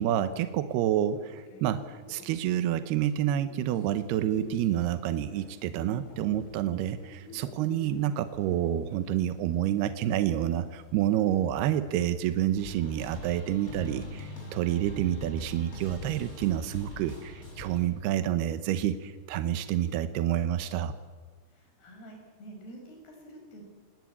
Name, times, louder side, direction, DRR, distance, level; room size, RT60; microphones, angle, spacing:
voice 1, 0.0-20.9, right 11 dB, 80° right, 11 dB, 2.3 m, -28 dB
sound 1, 1.1-12.0 12.2-17.4, left 3 dB, 80° left, 5.6 m, -53 dB
sound 2, 3.6-15.3, right 1 dB, 30° left, 8.8 m, -53 dB
sound 3, 12.6-17.8, left 1 dB, 15° left, 6.0 m, -41 dB
voice 2, 21.5-23.6, right 1 dB, 55° left, 3 dB, 6.9 m, -48 dB
26.0 x 20.0 x 8.4 m, 1.4 s
omnidirectional pair, 5.7 m